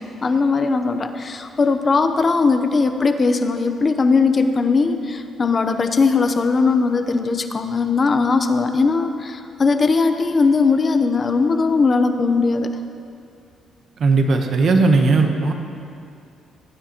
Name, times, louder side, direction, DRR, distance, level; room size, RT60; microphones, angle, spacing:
voice 1, 0.0-12.7, left 4 dB, 35° left, 7 dB, 0.7 m, -19 dB
voice 2, 14.0-15.5, right 3 dB, 55° right, 4 dB, 1.0 m, -17 dB
17.5 x 9.5 x 3.0 m, 2.5 s
cardioid pair, 90°, 0 cm